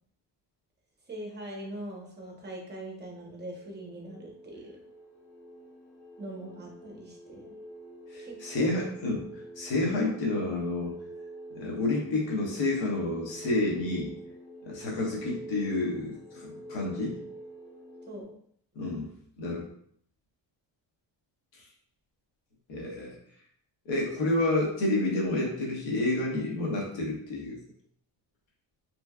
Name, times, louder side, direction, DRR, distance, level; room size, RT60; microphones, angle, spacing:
voice 1, 1.1-4.8 6.2-7.5 8.2-8.7 18.1-18.3, right 1 dB, 25° right, -1 dB, 0.8 m, -42 dB
sound 1, 3.1-18.2, right 1 dB, 55° left, 0.9 m, -46 dB
voice 2, 8.1-11.0 11.5-14.1 14.6-17.2 18.7-19.1 19.4-19.7 21.5-21.6 22.7-23.2 23.8-27.6, left 2 dB, 85° left, -2 dB, 1.2 m, -29 dB
3.4 x 3.1 x 2.2 m, 0.64 s
cardioid pair, 125°, 44 cm